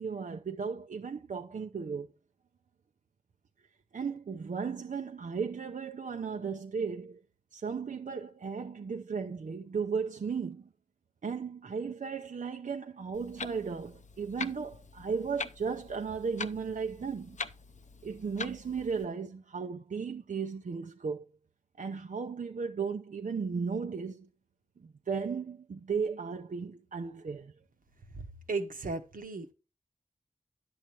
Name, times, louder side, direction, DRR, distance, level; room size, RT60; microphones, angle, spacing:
voice 1, 0.0-2.1 3.9-7.2 7.5-10.7 11.2-17.4 18.0-21.2 21.8-24.3 24.8-27.5, right 5 dB, 70° right, 0.6 m, -35 dB
Clock, 13.1-19.0, left 4 dB, 60° left, 0.6 m, -43 dB
voice 2, 28.5-29.5, right 3 dB, 85° right, 1.1 m, -35 dB
10.5 x 7.6 x 2.9 m
wide cardioid pair, 65°, 14 cm